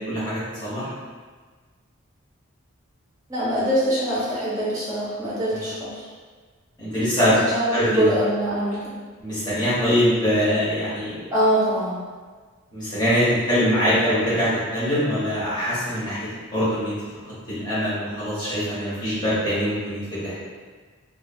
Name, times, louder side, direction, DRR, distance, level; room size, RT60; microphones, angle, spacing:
voice 1, 0.1-0.9 5.5-5.6 6.8-7.4 7.7-8.1 9.2-11.2 12.7-16.2 16.5-16.9 17.5-20.4, equal, 20° left, -12 dB, 1.0 m, -23 dB
voice 2, 3.3-6.0 7.2-9.0 11.3-12.0, right 1 dB, 15° right, -10 dB, 0.9 m, -23 dB
2.6 x 2.4 x 2.6 m, 1.4 s
head